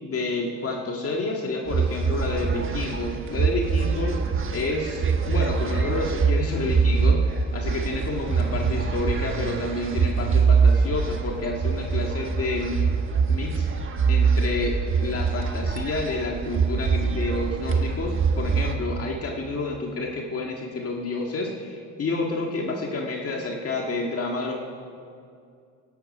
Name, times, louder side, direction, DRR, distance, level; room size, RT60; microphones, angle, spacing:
voice 1, 0.0-4.2 4.5-12.9 13.3-13.7 14.1-24.6, left 2 dB, 50° left, 0 dB, 1.8 m, -29 dB
sound 1, 1.7-18.7, right 5 dB, 45° right, 1.2 m, -24 dB
17.5 x 11.5 x 5.5 m, 2.3 s
cardioid pair, 90°, 30 cm